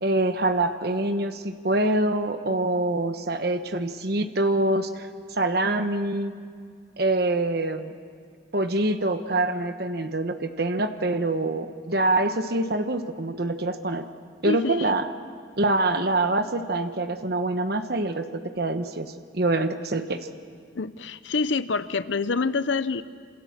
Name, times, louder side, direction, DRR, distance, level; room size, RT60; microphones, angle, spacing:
voice 1, 0.0-6.3 7.0-7.9 8.5-14.1 14.4-15.1 15.6-20.2, right 2 dB, 55° right, 8 dB, 1.1 m, -25 dB
voice 2, 14.4-14.9 20.7-23.0, left 4 dB, 70° left, 14 dB, 0.7 m, -26 dB
27.5 x 27.0 x 7.4 m, 2.1 s
head